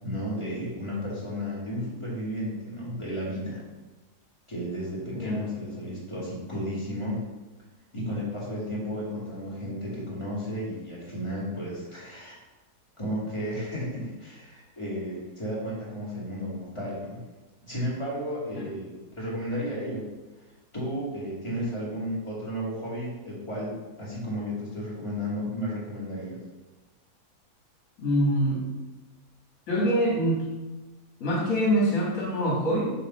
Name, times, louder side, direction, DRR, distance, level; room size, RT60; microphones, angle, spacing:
voice 1, 0.0-3.6 4.5-7.2 7.9-12.4 13.0-17.2 17.6-20.0 20.7-26.4, equal, 20° left, -7 dB, 2.1 m, -33 dB
voice 2, 28.0-28.6 29.7-30.4 31.2-32.9, equal, 60° left, -2 dB, 2.1 m, -25 dB
6.7 x 2.9 x 5.4 m, 1.1 s
omnidirectional pair, 1.6 m